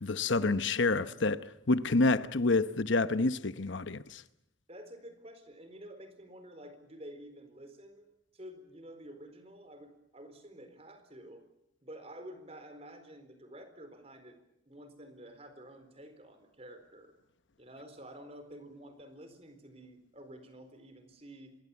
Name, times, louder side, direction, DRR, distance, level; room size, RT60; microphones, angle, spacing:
voice 1, 0.0-4.2, left 3 dB, 70° left, 0.9 m, -28 dB
voice 2, 4.7-8.1 8.3-11.5 11.8-14.4 14.7-17.1 17.6-21.6, right 1 dB, 30° right, 4.1 m, -50 dB
26.0 x 21.0 x 7.1 m
head